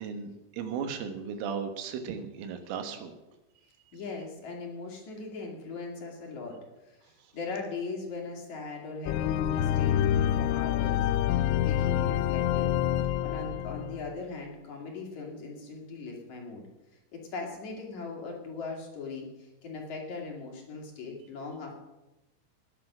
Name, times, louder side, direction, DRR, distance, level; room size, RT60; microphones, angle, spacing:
voice 1, 0.0-3.2, right 6 dB, 80° right, 6 dB, 3.9 m, -36 dB
voice 2, 3.9-11.1 11.3-12.7 13.2-16.6 17.1-21.7, left 4 dB, 45° left, 0 dB, 3.0 m, -39 dB
sound 1, 9.1-14.2, left 11 dB, 90° left, 2.6 m, -27 dB
20.0 x 8.0 x 6.1 m, 1.0 s
omnidirectional pair, 5.8 m